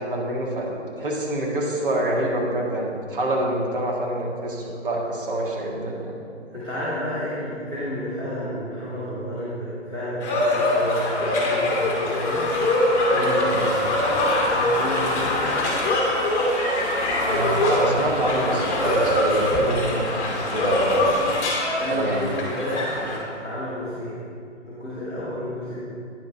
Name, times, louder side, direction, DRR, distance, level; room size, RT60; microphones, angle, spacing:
voice 1, 0.0-6.1 13.8-13.9 17.2-21.2 21.9-22.4, right 1 dB, 45° right, -2 dB, 1.7 m, -26 dB
voice 2, 6.5-12.5 13.0-14.1 14.4-15.5 21.7-24.2 24.6-25.8, equal, 5° right, -14 dB, 0.4 m, -31 dB
sound 1, 10.2-23.2, left 1 dB, 20° left, 1.4 m, -23 dB
9.5 x 5.2 x 4.0 m, 2.3 s
figure-of-eight pair, 140°, 36 cm